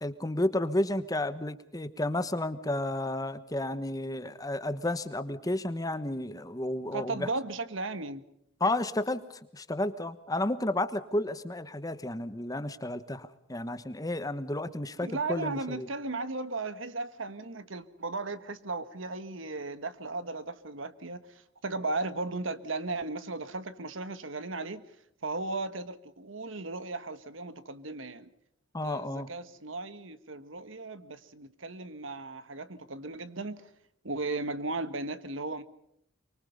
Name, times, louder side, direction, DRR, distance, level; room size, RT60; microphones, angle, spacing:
voice 1, 0.0-7.3 8.6-9.2 9.5-15.9 28.7-29.3, left 1 dB, 20° left, 12 dB, 1.1 m, -32 dB
voice 2, 6.9-8.2 15.0-21.2 21.6-24.8 25.2-28.3 28.8-33.6 34.0-35.6, right 3 dB, 80° right, 12 dB, 1.6 m, -36 dB
24.5 x 24.0 x 5.4 m, 0.73 s
head